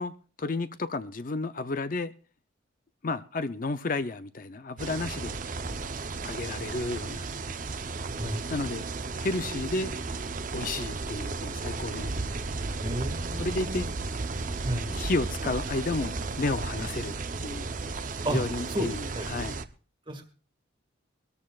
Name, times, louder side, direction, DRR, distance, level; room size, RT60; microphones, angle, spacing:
voice 1, 0.0-2.1 3.0-5.4 6.2-7.3 8.5-8.8 9.2-9.9 10.5-12.1 13.4-13.9 14.5-17.1 17.4-17.7 18.0-19.6, left 2 dB, 40° left, 0.5 m, -32 dB
sound 1, 4.8-19.6, right 3 dB, 40° right, 0.7 m, -34 dB
voice 2, 12.8-13.8 14.6-14.9 18.2-18.4 18.7-18.9 19.1-19.3 20.1-20.3, right 1 dB, 25° right, 1.9 m, -31 dB
23.0 x 13.5 x 2.4 m
head